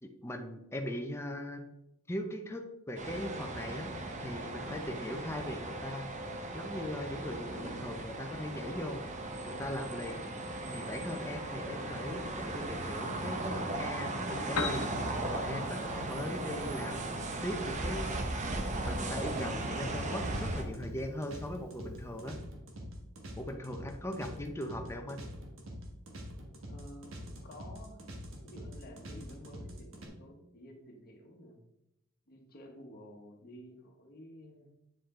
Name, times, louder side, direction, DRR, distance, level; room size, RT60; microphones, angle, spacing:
voice 1, 0.0-1.6 2.1-3.9 4.2-6.1 6.5-9.0 9.4-10.2 10.7-14.8 15.3-17.2 17.4-18.1 18.8-22.4 23.4-25.2, left 1 dB, 10° left, 3 dB, 0.7 m, -39 dB
sound 1, 3.0-20.6, right 2 dB, 35° right, 0.9 m, -37 dB
Piano, 14.3-22.3, left 4 dB, 90° left, 1.1 m, -45 dB
sound 2, 19.4-30.1, equal, 65° right, 1.5 m, -45 dB
voice 2, 26.7-28.1 28.4-31.6 32.3-34.7, equal, 45° left, 0 dB, 1.3 m, -52 dB
8.9 x 5.1 x 3.8 m, 0.86 s
head